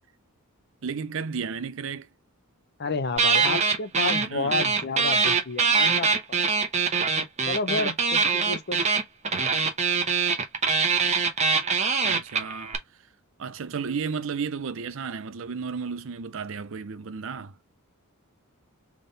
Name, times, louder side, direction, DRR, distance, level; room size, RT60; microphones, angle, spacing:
voice 1, 0.8-2.1 4.2-4.6 12.0-12.7 13.4-17.5, right 5 dB, 60° right, 0.5 m, -33 dB
voice 2, 2.8-6.5 7.5-8.9, left 3 dB, 50° left, 0.7 m, -30 dB
sound 1, 3.2-4.3 4.5-12.8, right 5 dB, 30° right, 0.9 m, -23 dB
3.7 x 3.6 x 4.0 m
head